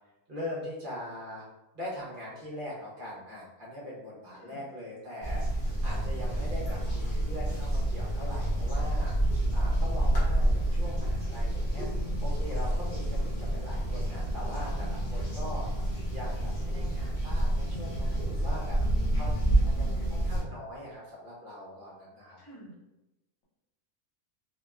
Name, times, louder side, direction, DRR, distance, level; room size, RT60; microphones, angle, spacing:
voice 1, 0.3-1.5 1.7-11.9 12.2-15.7 16.1-18.8 19.1-19.3 19.6-22.4, left 1 dB, 45° right, -7 dB, 0.8 m, -41 dB
sound 1, 5.2-20.4, right 1 dB, 45° left, 0.8 m, -28 dB
voice 2, 18.8-20.1 22.4-22.7, left 1 dB, 65° left, -5 dB, 1.3 m, -47 dB
2.8 x 2.1 x 2.3 m, 0.97 s
omnidirectional pair, 1.6 m